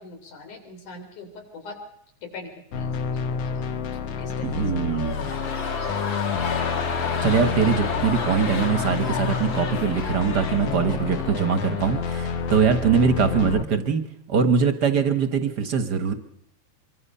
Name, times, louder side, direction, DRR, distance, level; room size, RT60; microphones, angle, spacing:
voice 1, 0.0-1.8 2.2-2.5 2.8-2.9 3.2-3.6 3.9-5.0 5.2-6.0 7.7-8.1, left 3 dB, 85° left, 3 dB, 5.1 m, -42 dB
sound 1, 2.7-13.6, left 5 dB, 65° left, 1.8 m, -29 dB
voice 2, 4.4-5.2 7.2-14.0 14.3-16.1, right 6 dB, 50° right, 9 dB, 1.3 m, -22 dB
sound 2, 4.9-13.0 13.2-13.3, left 6 dB, 45° left, 2.3 m, -32 dB
25.5 x 23.5 x 5.6 m, 0.72 s
omnidirectional pair, 3.4 m